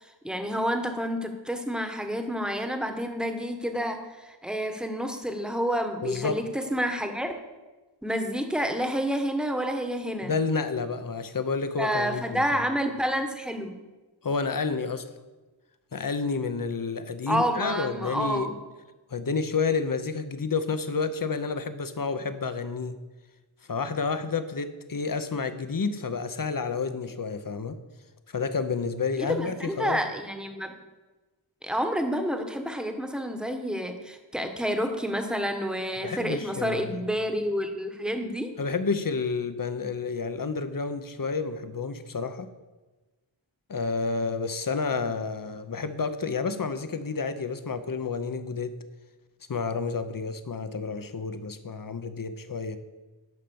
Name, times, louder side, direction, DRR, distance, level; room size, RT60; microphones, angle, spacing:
voice 1, 0.0-7.3 8.0-10.3 11.8-13.8 17.3-18.6 29.2-30.7 31.6-38.5, equal, ahead, 5 dB, 1.2 m, -29 dB
voice 2, 6.0-6.4 10.2-12.6 14.2-15.0 15.9-18.5 19.1-22.9 23.7-27.8 28.3-30.0 36.0-37.0 38.6-42.5 43.7-48.7 49.5-52.8, left 4 dB, 45° left, 10 dB, 0.8 m, -30 dB
11.0 x 5.6 x 7.0 m, 1.2 s
wide cardioid pair, 60°, 47 cm